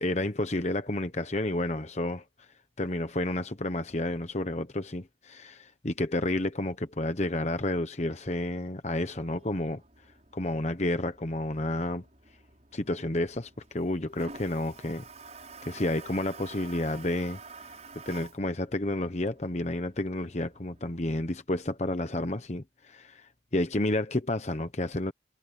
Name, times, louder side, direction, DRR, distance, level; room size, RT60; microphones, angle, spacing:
voice 1, 0.0-2.2 2.8-9.8 10.3-12.0 12.7-15.0 15.6-17.4 18.1-25.1, left 1 dB, 35° left, 1.0 m, -30 dB
Toilet flush, 8.9-21.2, right 4 dB, 35° right, 6.6 m, -50 dB
head